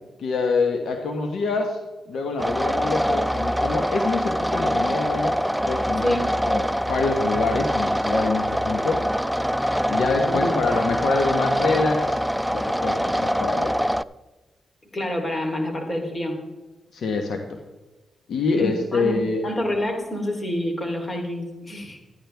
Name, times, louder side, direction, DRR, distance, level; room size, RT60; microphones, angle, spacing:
voice 1, 0.2-1.8 2.1-5.4 5.7-6.1 6.5-9.0 9.9-12.2 12.5-13.8 16.9-17.6 18.3-19.5, left 3 dB, 80° left, 4 dB, 1.2 m, -25 dB
sound 1, 2.4-14.0, equal, ahead, 0.3 m, -24 dB
voice 2, 10.2-10.5 14.9-16.4 18.5-22.0, left 1 dB, 35° left, 2 dB, 3.3 m, -27 dB
12.5 x 10.5 x 3.4 m, 1.2 s
cardioid pair, 65°, 0 cm